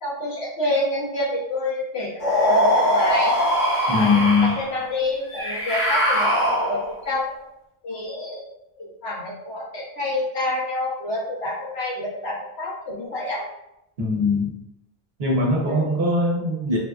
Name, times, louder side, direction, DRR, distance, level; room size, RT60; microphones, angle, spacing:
voice 1, 0.0-3.3 3.9-7.3 7.8-8.5 8.8-13.4 15.6-15.9, left 1 dB, 85° left, -5 dB, 1.2 m, -28 dB
sound 1, 2.2-4.7 5.3-7.0, equal, 50° left, 0.9 m, -21 dB
voice 2, 3.9-4.6 14.0-14.5 15.2-16.8, left 3 dB, 80° right, -2 dB, 1.1 m, -21 dB
3.3 x 2.3 x 2.3 m, 0.85 s
omnidirectional pair, 1.0 m